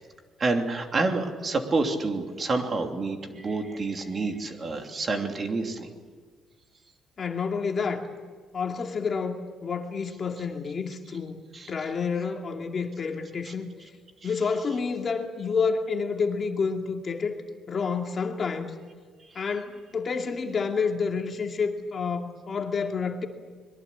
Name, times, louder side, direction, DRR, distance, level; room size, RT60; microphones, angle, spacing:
voice 1, 0.4-5.9 11.1-11.2 11.5-11.7 13.4-13.5 14.2-14.6 19.3-19.6, right 3 dB, 30° right, 4 dB, 2.9 m, -29 dB
voice 2, 7.2-8.1 8.5-11.4 11.7-13.7 14.2-17.4 17.7-18.7 19.3-23.3, left 5 dB, 35° left, 3 dB, 2.4 m, -29 dB
25.5 x 22.5 x 8.5 m, 1.5 s
cardioid pair, 150°, 0 cm